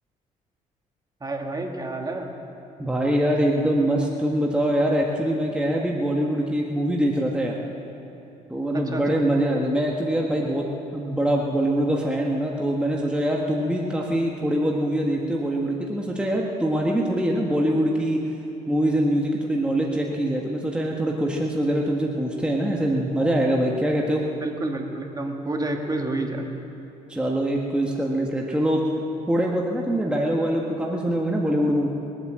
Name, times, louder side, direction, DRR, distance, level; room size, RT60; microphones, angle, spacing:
voice 1, 1.2-2.3 8.7-9.2 24.4-26.5, right 2 dB, 25° right, 2 dB, 2.1 m, -29 dB
voice 2, 2.8-7.5 8.5-10.7 10.9-18.2 18.7-24.3 27.1-28.8 29.3-31.9, right 1 dB, 5° right, -2 dB, 1.7 m, -23 dB
22.0 x 8.6 x 7.7 m, 2.9 s
supercardioid pair, 75°, 15 cm